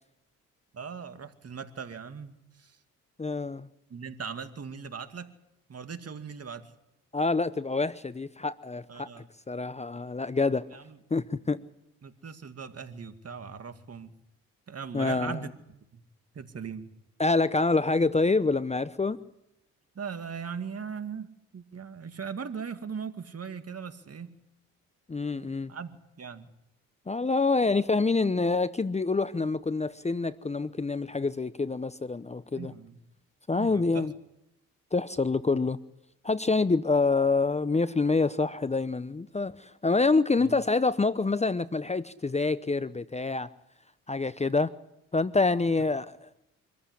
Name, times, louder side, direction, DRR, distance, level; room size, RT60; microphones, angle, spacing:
voice 1, 0.7-2.8 3.9-5.3 5.7-6.7 8.9-9.3 10.7-11.0 12.0-14.1 14.7-15.5 15.9-16.0 16.3-16.9 19.9-24.3 25.4-26.5 32.5-33.0 33.5-34.1 40.4-40.5, right 6 dB, 45° right, 9 dB, 2.3 m, -39 dB
voice 2, 3.2-3.7 7.1-9.1 9.5-10.7 11.1-11.6 14.9-15.4 17.2-19.2 25.1-25.7 27.1-32.7 33.5-34.1 34.9-35.8 36.2-43.5 44.1-44.7 45.1-46.4, left 3 dB, 20° left, 15 dB, 0.9 m, -26 dB
25.0 x 15.0 x 10.0 m, 0.88 s
hypercardioid pair, 55°, 35 cm